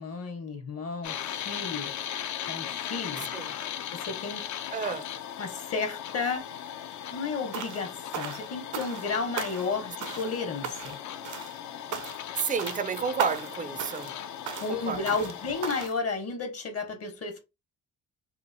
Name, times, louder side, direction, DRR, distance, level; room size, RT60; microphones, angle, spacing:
voice 1, 0.0-1.9 2.5-3.3 4.0-4.5 5.4-6.5 7.1-11.0 14.6-17.4, left 4 dB, 50° left, 0.9 m, -32 dB
sound 1, 1.0-15.9, left 10 dB, 70° left, 0.5 m, -38 dB
voice 2, 4.7-5.1 12.3-14.2 14.7-15.1, right 6 dB, 30° right, 0.4 m, -31 dB
sound 2, 7.5-7.9 8.1-9.1 9.4-9.7 10.0-10.4 10.6-11.0 11.2-11.6 11.9-12.3 12.6-12.8 13.2-13.5 13.8-14.1 14.5-14.7 15.1-15.3 15.6-16.0, right 8 dB, 80° right, 0.6 m, -36 dB
3.0 x 2.4 x 2.6 m
cardioid pair, 90°, 30 cm